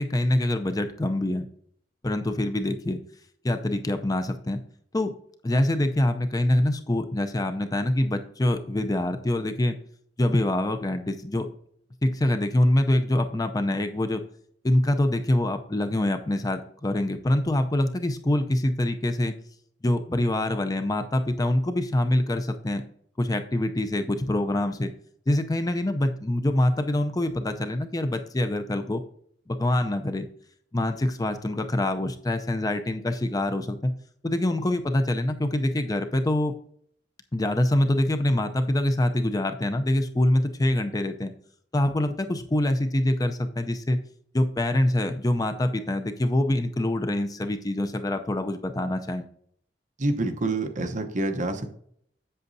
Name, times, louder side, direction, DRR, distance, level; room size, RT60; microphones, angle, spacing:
voice 1, 0.0-1.5 2.0-3.0 3.4-4.6 4.9-5.1 5.4-9.8 10.2-11.5 12.0-14.2 14.6-19.4 19.8-22.8 23.2-24.9 25.3-29.0 29.5-30.3 30.7-33.9 34.2-36.5 37.3-41.3 41.7-44.0 44.3-49.3, left 1 dB, 20° left, 7 dB, 0.5 m, -25 dB
voice 2, 50.0-51.7, right 2 dB, 45° right, 6 dB, 0.9 m, -27 dB
7.9 x 7.4 x 2.7 m, 0.63 s
head